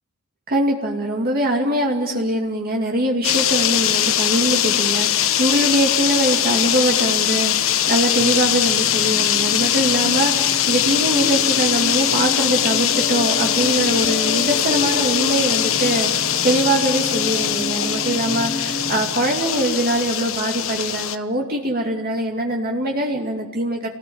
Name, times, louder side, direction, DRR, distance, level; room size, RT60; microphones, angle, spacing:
voice 1, 0.5-23.9, right 1 dB, 45° right, 0 dB, 2.5 m, -22 dB
sound 1, 3.2-21.2, left 10 dB, 65° left, 1.2 m, -21 dB
sound 2, 8.2-19.6, left 1 dB, 25° left, 0.9 m, -31 dB
29.5 x 19.0 x 8.9 m, 1.2 s
head